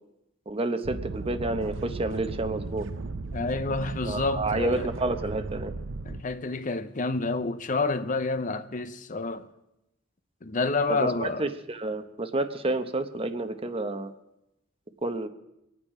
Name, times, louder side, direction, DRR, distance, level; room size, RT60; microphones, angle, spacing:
voice 1, 0.5-2.9 4.0-5.7 10.9-14.1 15.0-15.3, right 2 dB, 30° right, 0.8 m, -29 dB
sound 1, 0.8-6.2, right 3 dB, 75° right, 0.7 m, -36 dB
voice 2, 3.3-4.9 6.0-9.5 10.4-11.5, left 3 dB, 40° left, 0.7 m, -29 dB
24.5 x 9.0 x 4.8 m
head